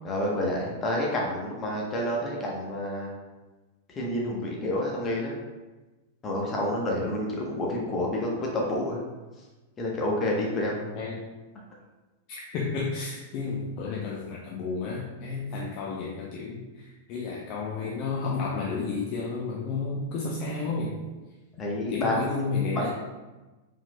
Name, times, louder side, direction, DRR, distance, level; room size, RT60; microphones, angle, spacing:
voice 1, 0.0-3.1 4.0-5.4 6.2-9.0 9.8-10.9 13.8-14.0 15.5-15.7 21.6-22.4 22.7-22.9, left 1 dB, 25° left, -2 dB, 0.9 m, -29 dB
voice 2, 10.9-11.3 12.3-21.0 21.9-22.9, left 4 dB, 45° left, -3 dB, 0.6 m, -32 dB
4.7 x 3.7 x 2.2 m, 1.2 s
hypercardioid pair, 105°, 0 cm